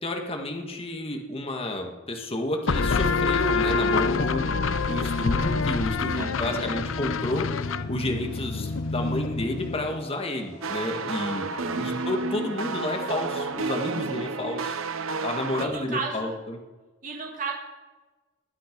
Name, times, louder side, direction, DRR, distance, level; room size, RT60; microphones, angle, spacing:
voice 1, 0.0-7.5 7.9-11.5 11.8-14.8 15.2-16.6, left 1 dB, 30° left, 3 dB, 1.9 m, -31 dB
sound 1, 2.7-10.0, left 4 dB, 70° left, 0.6 m, -26 dB
sound 2, 4.6-13.5, right 1 dB, 50° left, 4.8 m, -51 dB
voice 2, 6.2-6.7 11.6-12.0 15.6-16.3 17.0-17.5, right 4 dB, 40° right, 0 dB, 2.2 m, -34 dB
sound 3, 10.6-15.7, right 4 dB, 85° right, 0.9 m, -31 dB
21.0 x 11.5 x 5.3 m, 1.2 s
head